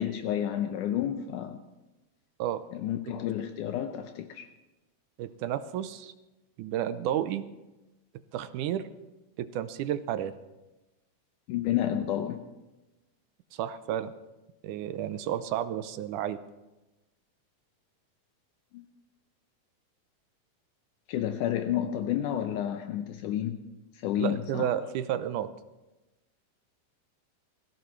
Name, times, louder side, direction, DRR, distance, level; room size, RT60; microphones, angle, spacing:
voice 1, 0.0-1.6 2.7-4.5 11.5-12.5 18.7-18.8 21.1-23.6 24.0-24.7, left 11 dB, 80° left, 6 dB, 2.2 m, -30 dB
voice 2, 5.2-6.1 6.6-7.5 8.3-8.9 9.4-10.4 13.5-14.1 14.6-16.4 24.2-25.5, right 11 dB, 80° right, 11 dB, 2.1 m, -31 dB
23.5 x 15.5 x 3.2 m, 1.0 s
omnidirectional pair, 3.7 m